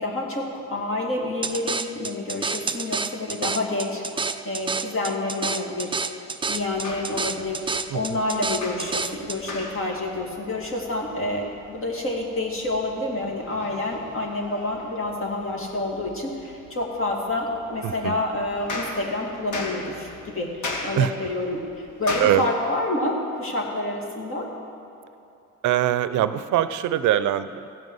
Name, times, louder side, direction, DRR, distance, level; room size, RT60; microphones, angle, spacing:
voice 1, 0.0-4.0 4.4-6.0 6.5-24.5, left 2 dB, 45° left, 0 dB, 2.4 m, -28 dB
sound 1, 1.4-9.4, right 4 dB, 15° right, 0.4 m, -29 dB
sound 2, 6.5-22.3, left 2 dB, 80° left, 1.6 m, -38 dB
voice 2, 17.8-18.1 21.0-21.1 22.2-22.4 25.6-27.7, right 12 dB, 75° right, 13 dB, 0.6 m, -22 dB
16.0 x 5.4 x 7.9 m, 2.7 s
cardioid pair, 90°, 30 cm